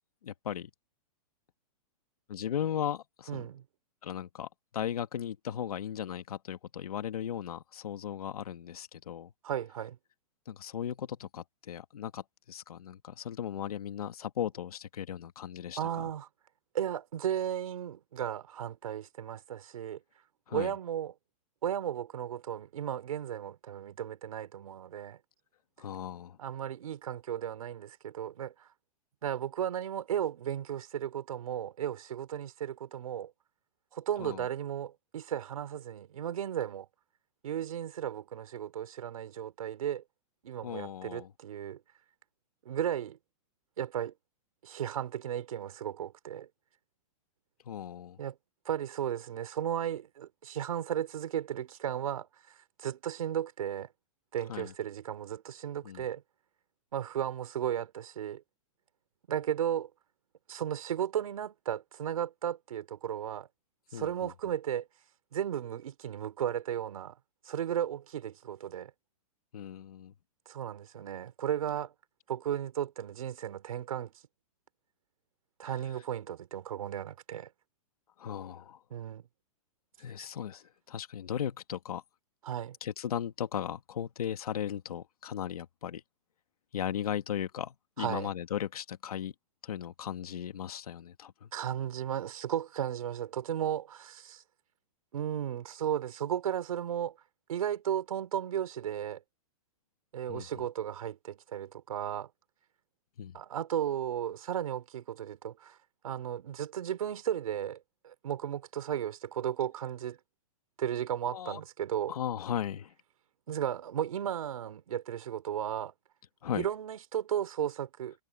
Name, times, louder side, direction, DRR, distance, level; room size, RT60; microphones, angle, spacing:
voice 1, 0.2-0.7 2.3-3.5 4.0-4.5 4.7-9.3 10.5-16.1 20.5-20.7 25.8-26.4 34.2-34.5 40.6-41.3 47.6-48.2 54.5-54.7 55.8-56.0 63.9-64.3 69.5-70.1 78.2-78.8 80.0-82.0 82.8-86.0 86.7-89.3 89.6-91.5 100.3-100.5 103.2-103.4 111.3-111.6 112.1-112.9 116.4-116.7, left 9 dB, 85° left, 2.2 m, -37 dB
voice 2, 3.3-3.6 9.4-10.0 15.8-16.3 16.7-20.0 20.5-21.1 21.6-25.2 26.4-28.7 29.2-33.3 33.9-36.9 37.4-40.0 40.4-41.8 42.6-43.2 43.8-44.1 44.6-46.5 48.2-48.4 48.6-52.3 52.8-53.9 54.3-56.2 56.9-58.4 59.3-59.9 60.5-63.5 63.9-64.9 65.3-67.2 67.4-68.9 70.5-71.9 72.3-74.1 75.6-77.5 78.9-79.2 80.2-80.3 82.4-82.8 88.0-88.3 91.5-94.4 95.1-97.1 97.5-99.2 100.1-102.3 103.3-105.8 106.0-110.2 110.8-112.1 113.5-115.9 116.5-118.1, right 10 dB, 70° right, 4.9 m, -35 dB
hypercardioid pair, 175°, 19 cm